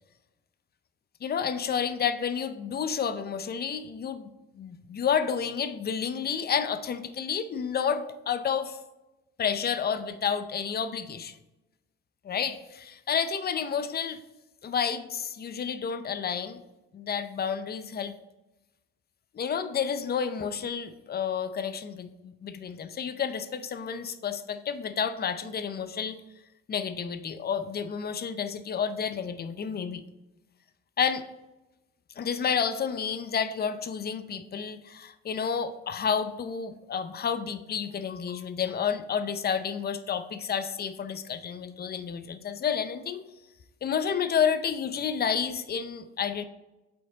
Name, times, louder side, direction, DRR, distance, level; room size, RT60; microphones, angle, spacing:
voice 1, 1.2-4.3 4.6-8.8 9.4-11.4 12.2-14.2 14.6-16.6 16.9-18.1 19.3-26.2 26.7-30.0 31.0-31.2 32.2-43.2 43.8-46.4, left 7 dB, 35° left, 12 dB, 0.5 m, -30 dB
7.6 x 4.2 x 3.9 m, 1.0 s
cardioid pair, 90°, 30 cm